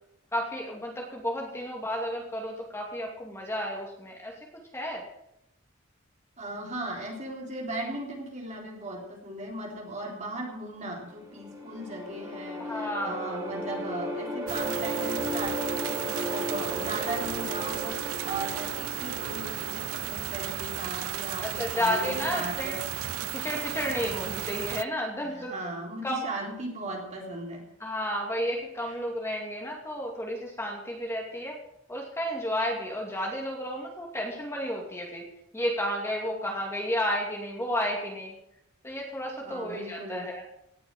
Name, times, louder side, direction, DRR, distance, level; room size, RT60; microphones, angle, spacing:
voice 1, 0.3-5.0 12.6-13.4 21.4-22.7 23.3-25.5 26.0-26.2 27.8-31.6 31.9-35.3 35.5-38.3 38.8-40.4, equal, 15° left, 0 dB, 2.5 m, -32 dB
voice 2, 6.4-22.9 25.2-27.7 28.8-28.9 39.4-40.4, right 1 dB, 35° right, -1 dB, 3.7 m, -37 dB
sound 1, 11.0-20.2, equal, 20° right, 3.1 m, -35 dB
sound 2, 14.5-24.8, right 11 dB, 85° right, 0.5 m, -34 dB
18.0 x 7.0 x 7.7 m, 0.79 s
head